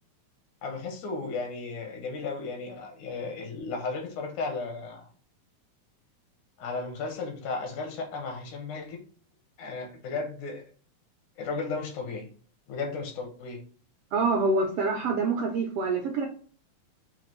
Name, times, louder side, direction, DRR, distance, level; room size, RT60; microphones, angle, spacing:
voice 1, 0.6-5.1 6.6-9.0 9.6-10.6 11.4-12.3 12.7-13.6, left 4 dB, 80° left, 3 dB, 2.4 m, -34 dB
voice 2, 14.1-16.3, right 3 dB, 80° right, 2 dB, 1.3 m, -26 dB
5.8 x 2.6 x 3.0 m, 0.44 s
omnidirectional pair, 3.4 m